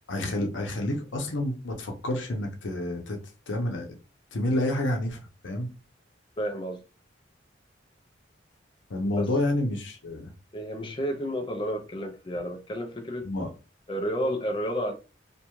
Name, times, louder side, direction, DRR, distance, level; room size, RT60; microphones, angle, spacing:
voice 1, 0.1-3.2 3.5-4.0 4.3-5.7 8.9-10.3 13.2-13.5, left 1 dB, 80° left, 0.7 m, -29 dB
voice 2, 6.4-6.8 9.2-9.3 10.5-13.3 13.9-14.9, equal, 25° left, 0.4 m, -31 dB
2.6 x 2.3 x 2.9 m
head